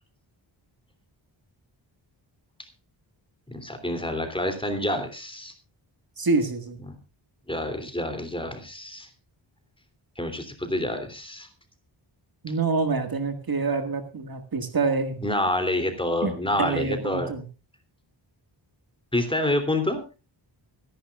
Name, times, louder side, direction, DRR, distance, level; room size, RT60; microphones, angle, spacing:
voice 1, 3.5-5.5 6.9-7.0 7.5-9.1 10.2-11.5 15.2-17.3 19.1-20.0, left 1 dB, 10° left, 7 dB, 3.1 m, -27 dB
voice 2, 6.2-6.8 12.4-15.2 16.2-17.4, right 4 dB, 50° right, 7 dB, 1.9 m, -26 dB
24.5 x 11.0 x 2.4 m, 0.30 s
wide cardioid pair, 120°, 47 cm